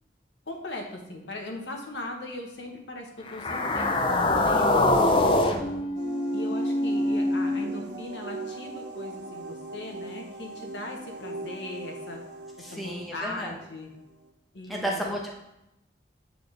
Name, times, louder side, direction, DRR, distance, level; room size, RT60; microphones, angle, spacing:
voice 1, 0.5-3.9 4.3-5.8 6.3-12.2 12.6-13.9 14.5-15.0, left 2 dB, 80° left, 2 dB, 1.0 m, -39 dB
sound 1, 3.3-7.6, left 1 dB, 30° left, 0.5 m, -24 dB
sound 2, 5.9-14.3, right 2 dB, 85° right, 0.9 m, -40 dB
voice 2, 12.6-13.5 14.7-15.4, equal, ahead, -2 dB, 0.9 m, -32 dB
8.4 x 4.0 x 3.3 m, 0.87 s
head